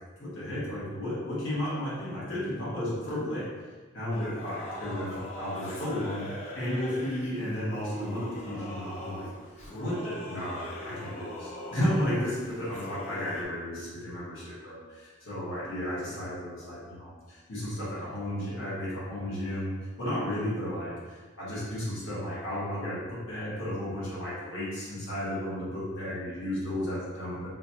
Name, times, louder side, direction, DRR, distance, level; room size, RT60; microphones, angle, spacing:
voice 1, 0.2-3.5 3.9-6.3 6.5-9.3 9.7-23.0 23.3-27.5, left 1 dB, 70° left, -9 dB, 1.1 m, -33 dB
Singing / Musical instrument, 4.1-13.5, left 1 dB, 35° left, 0.5 m, -41 dB
3.8 x 2.2 x 2.8 m, 1.4 s
head